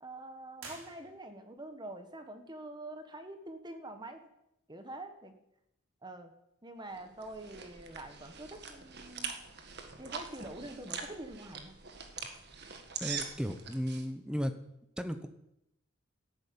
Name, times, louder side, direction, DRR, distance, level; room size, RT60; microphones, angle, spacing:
voice 1, 0.0-4.3 4.7-5.3 6.0-6.3 6.6-9.3 10.0-11.7, right 1 dB, 20° right, 7 dB, 1.6 m, -45 dB
sound 1, 0.5-1.6, right 3 dB, 75° right, 4.4 m, -50 dB
sound 2, 6.9-14.0, right 6 dB, 50° right, 1.7 m, -43 dB
voice 2, 13.0-14.5 15.0-15.3, equal, 5° right, 9 dB, 0.9 m, -35 dB
13.5 x 11.0 x 8.7 m, 0.83 s
head